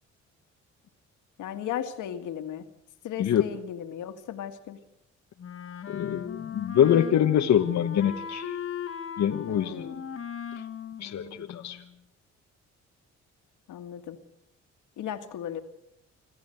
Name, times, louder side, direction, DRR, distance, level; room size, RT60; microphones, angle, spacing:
voice 1, 1.4-2.7 3.0-4.8 9.5-10.1 13.7-14.2 15.0-15.6, left 10 dB, 80° left, 7 dB, 2.0 m, -36 dB
Wind instrument woodwind instrument, 5.4-12.0, left 7 dB, 45° left, 1.8 m, -38 dB
voice 2, 5.9-8.6 9.2-9.9 11.0-11.8, left 10 dB, 65° left, 4 dB, 1.2 m, -24 dB
26.5 x 14.0 x 7.9 m, 0.84 s
cardioid pair, 90°, 30 cm